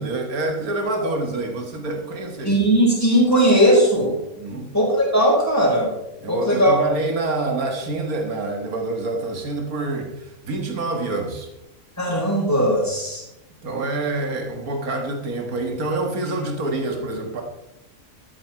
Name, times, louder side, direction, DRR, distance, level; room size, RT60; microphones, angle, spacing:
voice 1, 0.0-2.6 4.4-4.7 6.2-11.5 13.6-17.4, right 2 dB, 90° right, 3 dB, 2.1 m, -26 dB
voice 2, 2.4-4.1 4.7-5.9 6.3-6.7 12.0-13.2, equal, 10° left, -4 dB, 4.8 m, -18 dB
13.0 x 8.9 x 4.4 m, 0.87 s
omnidirectional pair, 1.5 m